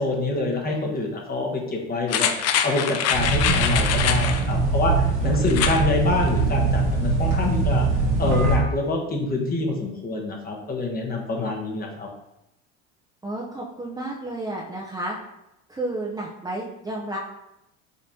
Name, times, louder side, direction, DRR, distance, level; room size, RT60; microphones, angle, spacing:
voice 1, 0.0-7.9 8.2-12.1, left 2 dB, 25° left, 0 dB, 1.1 m, -26 dB
sound 1, 2.1-4.4 5.4-5.8 6.2-6.3, left 8 dB, 45° left, 0.5 m, -24 dB
sound 2, 3.1-8.6, right 3 dB, 90° right, 1.3 m, -22 dB
voice 2, 13.2-15.2 15.7-17.2, right 1 dB, 10° right, -4 dB, 0.6 m, -31 dB
5.3 x 3.2 x 2.7 m, 0.87 s
supercardioid pair, 90°, 34 cm